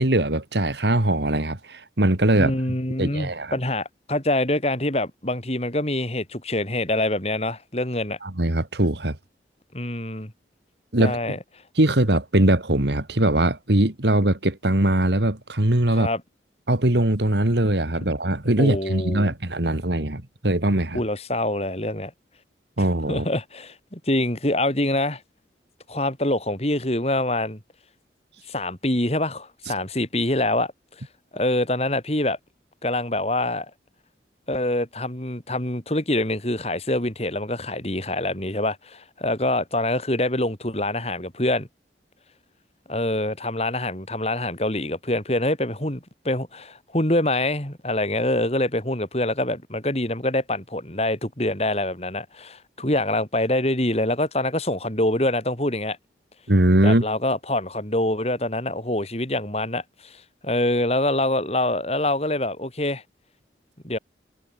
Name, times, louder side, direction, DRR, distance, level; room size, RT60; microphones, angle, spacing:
voice 1, 0.0-2.5 3.0-3.5 8.2-9.2 10.9-11.2 11.8-16.1 16.7-21.0 22.8-23.3 56.5-57.0, right 1 dB, 70° right, 2.3 m, -21 dB
voice 2, 2.4-8.2 9.7-10.3 11.0-11.4 15.9-16.2 18.6-19.3 20.9-22.1 22.8-25.2 25.9-27.6 28.5-30.7 31.3-32.4 32.8-33.7 34.5-41.7 42.9-56.0 56.8-63.0 63.8-64.0, left 1 dB, 35° left, 3.9 m, -25 dB
head